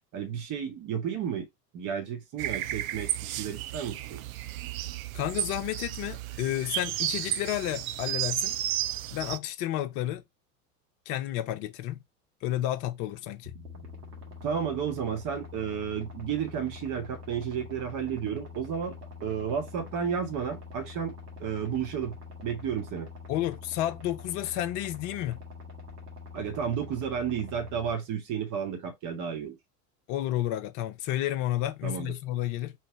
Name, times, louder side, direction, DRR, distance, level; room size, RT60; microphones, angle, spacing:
voice 1, 0.1-1.5 1.7-4.2 14.4-18.9 19.2-22.1 22.4-23.1 26.3-29.6 31.8-32.1, right 7 dB, 40° right, 1.4 m, -32 dB
sound 1, 2.4-9.4, right 13 dB, 60° right, 0.5 m, -33 dB
voice 2, 5.1-8.6 9.1-10.2 11.1-12.0 12.4-13.5 23.3-25.4 30.1-32.7, left 13 dB, 40° left, 0.6 m, -31 dB
sound 2, 13.4-27.9, left 4 dB, 80° right, 1.7 m, -45 dB
3.1 x 3.1 x 4.5 m
figure-of-eight pair, 85°, 47 cm